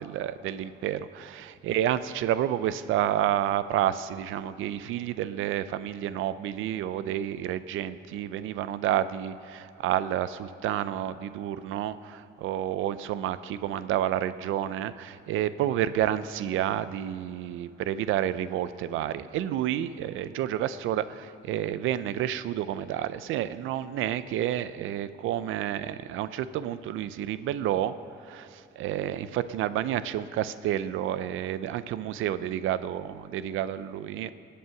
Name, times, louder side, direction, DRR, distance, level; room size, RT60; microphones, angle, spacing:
voice 1, 0.0-27.9 28.3-34.3, right 11 dB, 85° right, 14 dB, 0.6 m, -30 dB
18.5 x 8.5 x 5.9 m, 3.0 s
cardioid pair, 90°, 20 cm